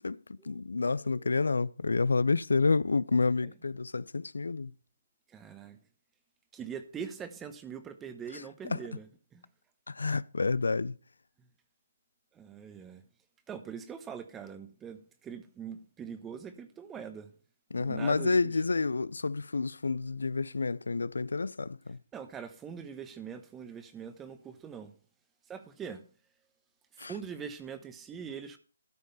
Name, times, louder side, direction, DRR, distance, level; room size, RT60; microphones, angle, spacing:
voice 1, 0.0-4.7 8.3-8.4 8.7-8.8 9.9-11.0 17.7-22.0 27.0-27.1, left 4 dB, 85° left, 0.4 m, -29 dB
voice 2, 5.3-5.8 6.5-9.1 9.3-9.4 12.3-13.0 13.5-17.3 17.7-18.5 22.1-24.9 25.5-26.1 26.9-28.6, right 7 dB, 10° right, 0.8 m, -43 dB
13.0 x 5.2 x 5.5 m
hypercardioid pair, 160°, 0 cm